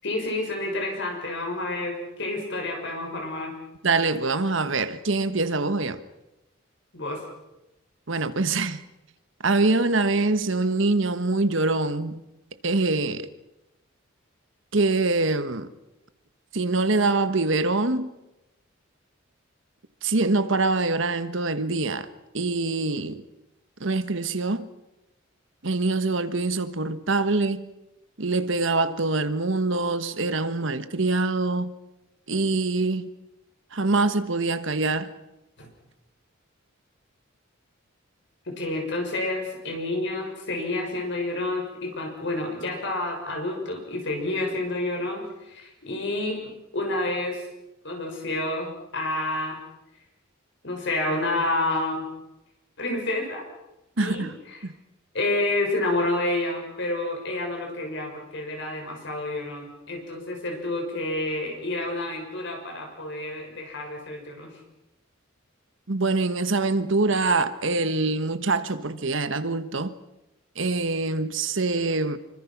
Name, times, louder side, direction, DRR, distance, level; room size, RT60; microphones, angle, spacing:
voice 1, 0.0-3.5 6.9-7.2 35.6-35.7 38.6-47.5 47.8-49.6 50.6-52.0 52.8-53.5 54.0-54.3 55.1-64.6, left 2 dB, 60° left, 6.4 m, -29 dB
voice 2, 3.8-6.0 8.1-8.8 9.4-12.2 12.6-13.3 14.7-15.7 16.5-18.1 20.0-22.1 22.3-23.2 23.8-24.7 25.6-27.7 28.2-31.7 32.3-33.1 33.7-35.1 54.0-54.4 54.6-54.7 65.9-69.9 70.6-72.2, right 3 dB, 65° right, 1.3 m, -24 dB
26.5 x 24.5 x 6.0 m
head